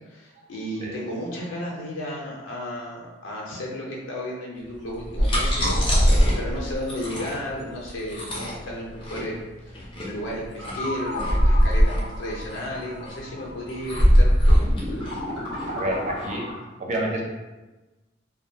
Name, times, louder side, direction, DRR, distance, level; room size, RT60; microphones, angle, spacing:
voice 1, 0.1-9.4 9.6-14.7, left 1 dB, 75° left, -3 dB, 0.5 m, -34 dB
sound 1, 4.9-16.3, equal, 25° left, 0.5 m, -21 dB
sound 2, 5.7-8.4 8.7-8.8 10.0-10.1 10.2-16.6, left 1 dB, 75° right, 1.0 m, -36 dB
voice 2, 15.7-16.4 16.8-17.2, right 1 dB, 40° right, -2 dB, 0.4 m, -28 dB
2.2 x 2.1 x 2.6 m, 1.2 s
head